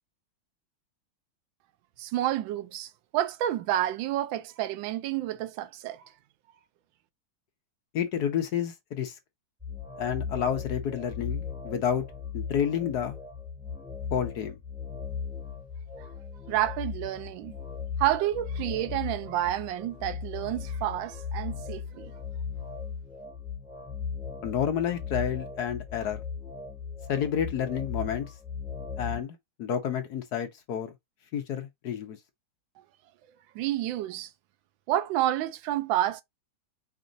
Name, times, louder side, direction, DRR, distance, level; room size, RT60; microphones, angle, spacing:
voice 1, 2.0-6.1 16.5-17.5 18.0-22.1 33.5-34.3 34.9-36.2, right 13 dB, 75° right, 1.3 m, -29 dB
voice 2, 7.9-9.1 10.0-12.0 12.3-13.2 14.1-14.6 24.4-26.2 27.1-28.3 29.0-30.9 31.3-32.2, left 8 dB, 60° left, 1.1 m, -30 dB
sound 1, 9.6-29.2, left 6 dB, 5° right, 1.4 m, -37 dB
5.2 x 2.5 x 3.8 m
omnidirectional pair, 2.3 m